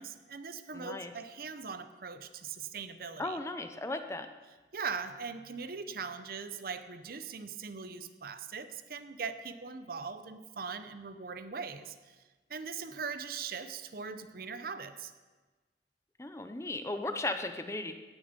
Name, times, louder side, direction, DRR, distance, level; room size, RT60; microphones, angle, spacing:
voice 1, 0.0-3.4 4.7-12.2 12.5-15.1, right 5 dB, 55° right, 11 dB, 0.7 m, -40 dB
voice 2, 0.7-1.1 3.2-4.3 16.2-18.0, left 2 dB, 15° left, 8 dB, 0.6 m, -36 dB
17.0 x 7.1 x 5.2 m, 1.3 s
head